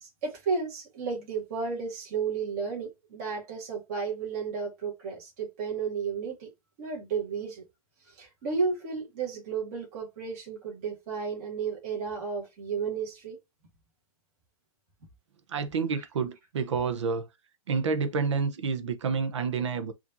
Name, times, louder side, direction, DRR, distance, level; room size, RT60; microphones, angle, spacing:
voice 1, 0.0-6.5 6.8-7.6 8.1-13.4, right 5 dB, 25° right, 1.8 m, -33 dB
voice 2, 15.5-17.3 17.7-19.9, right 5 dB, 50° right, 0.9 m, -29 dB
4.9 x 2.8 x 2.6 m
hypercardioid pair, 180°, 19 cm